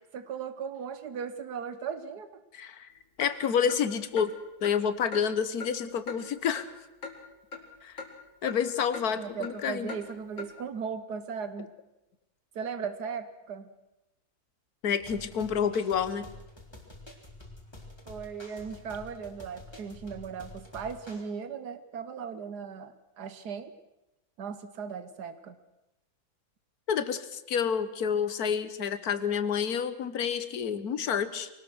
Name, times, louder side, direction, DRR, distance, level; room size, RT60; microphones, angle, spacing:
voice 1, 0.1-2.4 9.2-11.7 12.5-13.7 18.1-23.7 24.4-25.6, right 6 dB, 80° right, 11 dB, 1.6 m, -37 dB
voice 2, 2.5-2.9 3.2-4.3 4.6-6.7 7.8-8.0 8.4-9.9 14.8-16.3 26.9-31.5, left 7 dB, 70° left, 12 dB, 1.7 m, -29 dB
Clock, 3.2-3.3 3.7-3.8 4.2-4.3 4.6-4.8 5.1-5.2 5.6-5.7 6.1-6.2 6.6-6.7 7.0-7.2 7.5-7.6 8.0-8.1 8.5-8.6 8.9-9.1 9.4-9.5 9.9-10.0 10.4-10.5, left 5 dB, 50° left, 2.6 m, -39 dB
sound 1, 15.0-21.2, left 2 dB, 15° left, 3.4 m, -48 dB
23.5 x 18.5 x 6.2 m, 0.96 s
omnidirectional pair, 1.7 m